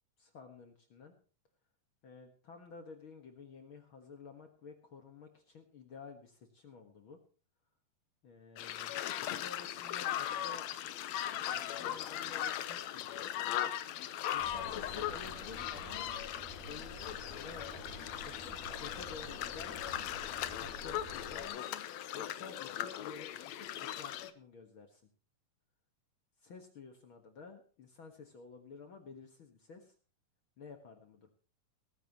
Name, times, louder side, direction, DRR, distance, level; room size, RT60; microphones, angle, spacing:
voice 1, 0.2-1.1 2.0-7.2 8.2-9.0 9.3-10.6 11.5-13.3 14.3-16.1 16.7-20.1 20.5-21.9 22.1-25.0 26.4-29.9 30.6-31.3, left 5 dB, 50° left, 5 dB, 1.8 m, -52 dB
sound 1, 8.6-24.3, left 11 dB, 70° left, 1.8 m, -39 dB
sound 2, 14.4-21.5, left 1 dB, 5° left, 4.4 m, -49 dB
18.0 x 14.5 x 3.0 m, 0.38 s
omnidirectional pair, 3.7 m